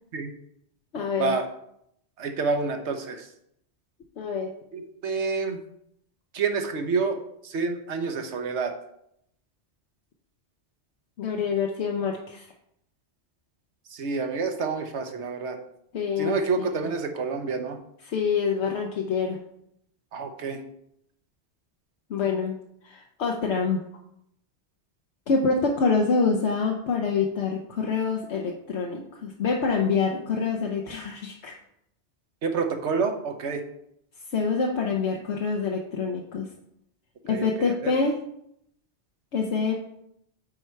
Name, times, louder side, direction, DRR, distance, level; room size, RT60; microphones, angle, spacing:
voice 1, 0.9-1.4 4.2-4.5 11.2-12.5 15.9-16.7 18.1-19.4 22.1-22.6 22.8-23.8 25.3-31.6 34.3-36.5 37.2-38.2 39.3-39.7, left 5 dB, 75° left, 1 dB, 1.0 m, -26 dB
voice 2, 2.2-3.3 4.7-5.6 6.3-8.7 13.9-15.6 16.2-17.8 20.1-20.6 32.4-33.6 37.3-37.9, right 4 dB, 80° right, 6 dB, 1.2 m, -28 dB
8.4 x 4.4 x 4.6 m, 0.75 s
omnidirectional pair, 1.2 m